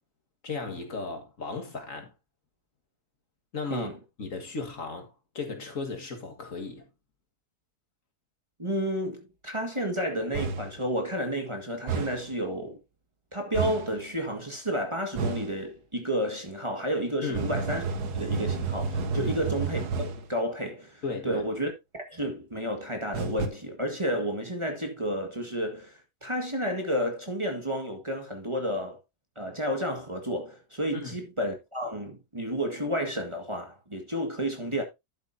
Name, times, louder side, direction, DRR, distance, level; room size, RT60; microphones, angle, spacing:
voice 1, 0.4-2.1 3.5-6.9 17.2-17.5 19.1-19.4 21.0-21.4 30.9-31.2, left 4 dB, 55° left, 2.1 m, -36 dB
voice 2, 8.6-12.8 13.3-17.8 18.1-21.7 22.1-29.0 29.4-34.8, equal, 20° right, 1.9 m, -31 dB
sound 1, 10.3-10.8 11.9-12.3 13.5-14.0 15.2-15.6 17.3-20.3 23.1-23.5, right 4 dB, 85° right, 1.7 m, -30 dB
11.5 x 8.0 x 2.7 m
omnidirectional pair, 1.7 m